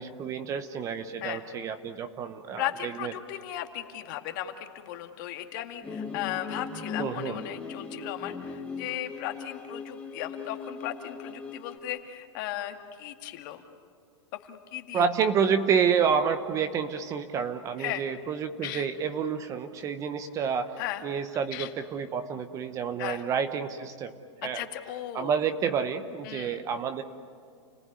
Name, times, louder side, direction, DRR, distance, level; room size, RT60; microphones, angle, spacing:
voice 1, 0.0-3.1 7.0-7.4 14.9-20.8 21.0-24.1 24.4-24.6 25.1-27.0, right 7 dB, 20° right, 9 dB, 0.9 m, -29 dB
voice 2, 2.6-13.6 14.4-15.1 17.8-18.1 18.6-18.9 20.8-21.0 21.5-21.7 23.0-23.2 24.4-25.4 26.2-26.6, left 13 dB, 45° left, 6 dB, 2.1 m, -36 dB
sound 1, 5.8-11.8, left 5 dB, 10° left, 1.5 m, -39 dB
30.0 x 19.0 x 9.6 m, 2.3 s
supercardioid pair, 160°, 15 cm